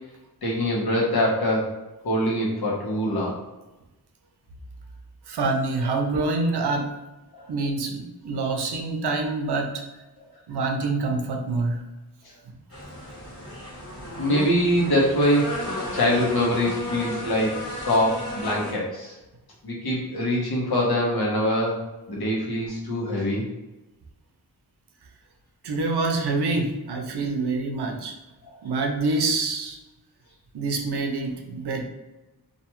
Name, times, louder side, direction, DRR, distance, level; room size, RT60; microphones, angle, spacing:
voice 1, 0.4-1.7 2.0-3.4 7.3-7.4 14.2-15.5 15.9-19.2 19.6-21.8 22.1-23.4, equal, 70° left, -4 dB, 1.0 m, -23 dB
voice 2, 5.3-6.9 7.5-9.8 10.5-11.8 25.6-28.1 28.6-29.8 30.5-31.9, right 3 dB, 80° right, 3 dB, 0.6 m, -26 dB
sound 1, 12.7-18.7, left 1 dB, 35° left, 1.1 m, -34 dB
2.5 x 2.3 x 2.9 m, 1.1 s
wide cardioid pair, 90°, 39 cm